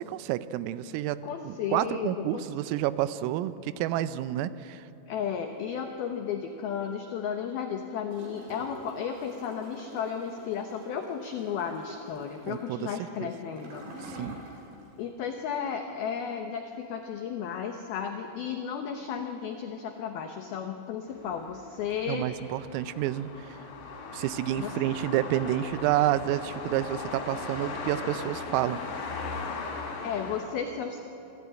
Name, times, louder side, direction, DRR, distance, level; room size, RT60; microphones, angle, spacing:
voice 1, 0.0-1.2 1.5-4.8 12.5-12.9 13.2-13.3 14.1-14.4 22.1-23.3 24.1-28.8, right 13 dB, 85° right, 14 dB, 3.3 m, -29 dB
voice 2, 1.2-2.4 5.1-14.3 15.0-22.3 24.6-24.7 30.0-31.0, left 7 dB, 85° left, 5 dB, 2.2 m, -34 dB
Gurgling / Toilet flush, 8.1-14.9 15.2-15.3, right 1 dB, 50° right, 5.1 m, -46 dB
sound 1, 21.1-30.5, left 4 dB, 45° left, 3.8 m, -38 dB
25.5 x 14.0 x 9.1 m, 2.8 s
omnidirectional pair, 5.9 m